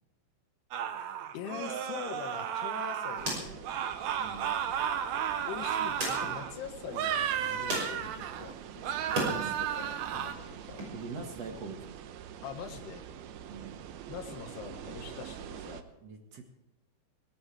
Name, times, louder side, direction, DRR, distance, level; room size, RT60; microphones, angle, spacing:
sound 1, 0.7-3.3 3.6-6.5 6.9-8.5 8.8-10.3, right 9 dB, 90° right, 1.6 m, -33 dB
voice 1, 1.3-3.7 5.5-8.9 9.2-10.8 12.4-13.1 14.1-15.9, left 7 dB, 85° left, 3 dB, 3.5 m, -43 dB
sound 2, 2.2-9.4 9.7-10.8, right 1 dB, 30° right, 6.6 m, -41 dB
sound 3, 3.2-15.8, right 9 dB, 75° right, 2.7 m, -46 dB
voice 2, 4.2-4.5 9.3-9.6 10.9-11.8 13.5-13.8 16.0-16.5, right 4 dB, 50° right, 3 dB, 2.4 m, -42 dB
20.5 x 17.5 x 3.5 m, 0.96 s
omnidirectional pair, 4.7 m